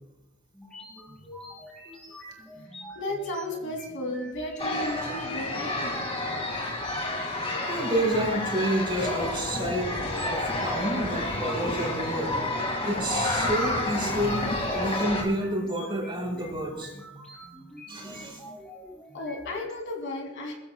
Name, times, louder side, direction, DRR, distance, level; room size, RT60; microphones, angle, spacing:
sound 1, 0.5-19.7, left 1 dB, 5° left, 4.9 m, -46 dB
voice 1, 2.9-6.1 19.1-20.5, left 1 dB, 60° left, 1 dB, 2.7 m, -34 dB
sound 2, 4.6-15.2, left 2 dB, 25° left, 2.2 m, -30 dB
voice 2, 7.7-12.3 12.8-16.9 17.9-18.4, right 1 dB, 25° right, 0 dB, 4.5 m, -29 dB
22.5 x 14.5 x 2.3 m, 1.0 s
head